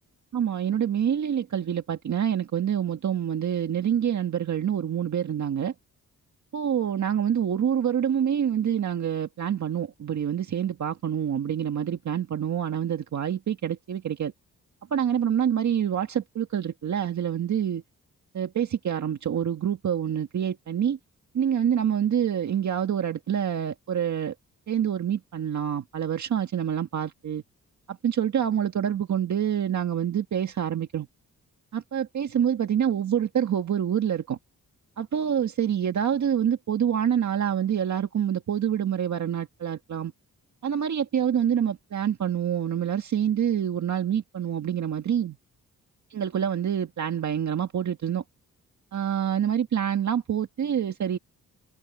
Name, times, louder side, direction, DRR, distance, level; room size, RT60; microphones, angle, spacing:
voice 1, 0.3-5.7 6.5-14.3 14.9-17.8 18.3-21.0 21.3-24.3 24.7-27.4 27.9-31.1 31.7-34.4 35.0-40.1 40.6-45.4 46.1-48.2 48.9-51.2, right 9 dB, 60° right, 1.7 m, -26 dB
open air
cardioid pair, 115°, 33 cm